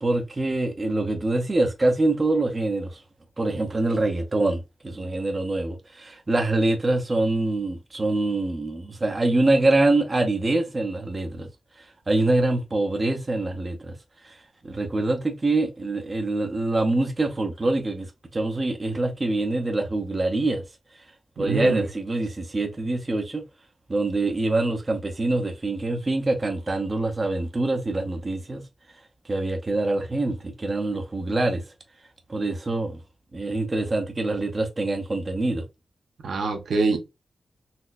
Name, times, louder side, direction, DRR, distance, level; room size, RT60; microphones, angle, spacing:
voice 1, 0.0-3.0 3.4-11.5 12.1-13.9 14.2-14.3 14.6-20.6 21.4-23.4 23.9-28.6 29.3-31.6 32.3-33.0 33.3-35.6, right 2 dB, 25° right, 0.5 m, -25 dB
voice 2, 21.4-21.8 36.2-37.0, right 3 dB, 85° right, 0.8 m, -24 dB
4.1 x 2.1 x 2.4 m
wide cardioid pair, 170°, 0 cm